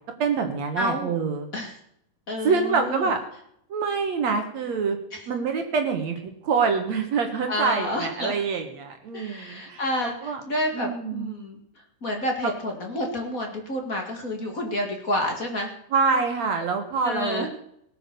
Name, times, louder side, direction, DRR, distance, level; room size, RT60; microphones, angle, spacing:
voice 1, 0.2-1.5 2.4-3.2 3.7-5.0 5.3-10.4 10.7-11.4 15.9-17.5, right 5 dB, 60° right, 5 dB, 2.0 m, -26 dB
voice 2, 0.8-1.1 1.5-1.7 2.3-3.1 5.1-5.2 7.5-8.3 9.1-11.6 12.0-15.7 17.0-17.5, left 1 dB, 30° left, 2 dB, 1.6 m, -29 dB
18.5 x 8.7 x 6.9 m, 0.72 s
omnidirectional pair, 4.8 m